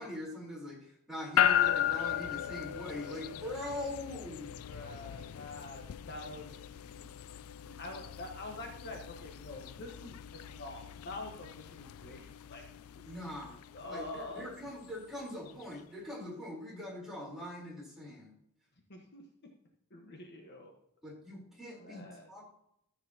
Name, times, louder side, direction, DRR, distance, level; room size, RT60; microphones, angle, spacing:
voice 1, 0.0-4.6 13.0-13.6 13.9-18.3 21.0-22.0 22.3-22.4, left 1 dB, ahead, -5 dB, 3.9 m, -42 dB
sound 1, 1.4-15.6, left 11 dB, 75° left, 0.4 m, -36 dB
voice 2, 4.6-6.6 7.5-12.6 12.9-13.0 13.7-14.4 18.9-19.2 19.9-20.7 21.6-22.3, left 2 dB, 50° left, 1 dB, 1.4 m, -46 dB
13.5 x 7.8 x 2.9 m, 0.74 s
head